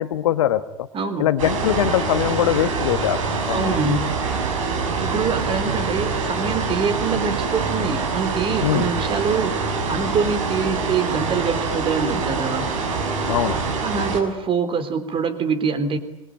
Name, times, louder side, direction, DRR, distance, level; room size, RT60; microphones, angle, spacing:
voice 1, 0.0-0.9 1.2-3.8 8.6-8.9 13.3-13.6, left 11 dB, 65° left, 11 dB, 1.3 m, -22 dB
voice 2, 0.9-1.3 3.5-4.1 5.0-12.7 13.8-16.0, right 5 dB, 30° right, 11 dB, 3.8 m, -24 dB
sound 1, 1.4-14.2, right 4 dB, 65° right, 6.4 m, -25 dB
25.5 x 23.0 x 9.4 m, 0.87 s
figure-of-eight pair, 75°, 18 cm